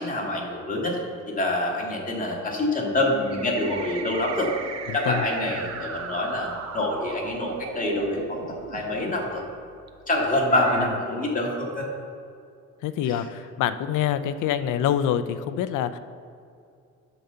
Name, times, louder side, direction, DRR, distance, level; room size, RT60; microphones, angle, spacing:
voice 1, 0.0-4.5 4.9-9.4 10.1-11.9 13.0-13.2, left 1 dB, 25° left, -2 dB, 2.1 m, -26 dB
sound 1, 3.1-9.1 9.9-10.0 10.5-10.9, right 6 dB, 60° right, 0.8 m, -37 dB
voice 2, 4.9-5.2 12.8-16.0, left 10 dB, 85° left, 12 dB, 0.5 m, -26 dB
10.0 x 4.1 x 6.8 m, 2.4 s
cardioid pair, 90°, 30 cm